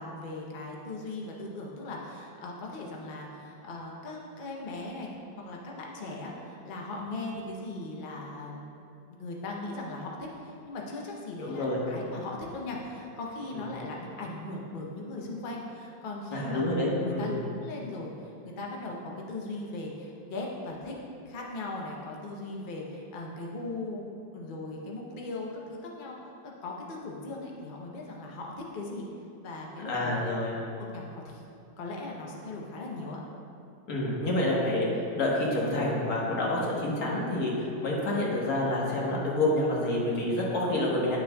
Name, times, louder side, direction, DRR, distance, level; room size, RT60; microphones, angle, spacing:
voice 1, 0.0-8.8 9.2-16.6 16.9-19.0 19.3-20.9 21.3-29.1 29.4-30.1 30.8-31.4 31.8-33.2, left 2 dB, 90° left, -1 dB, 0.4 m, -39 dB
voice 2, 11.4-11.8 16.3-17.3 29.8-30.5 33.9-34.9 35.2-41.2, left 1 dB, 55° left, -4 dB, 1.6 m, -28 dB
9.7 x 6.4 x 2.3 m, 2.7 s
omnidirectional pair, 2.1 m